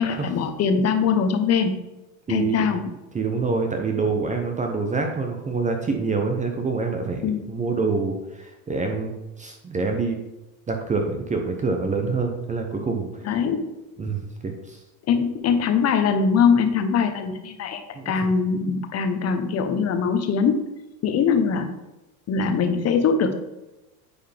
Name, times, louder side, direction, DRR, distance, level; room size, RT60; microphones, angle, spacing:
voice 1, 0.0-1.8 2.3-2.9 7.2-7.4 13.2-13.8 15.1-20.6 21.0-21.7 22.3-23.3, left 6 dB, 35° left, 7 dB, 1.0 m, -22 dB
voice 2, 2.3-2.7 3.1-10.2 10.7-13.3 14.0-14.8 17.9-18.1, right 4 dB, 15° right, 3 dB, 0.8 m, -26 dB
9.3 x 4.7 x 3.4 m, 1.0 s
supercardioid pair, 125°, 45 cm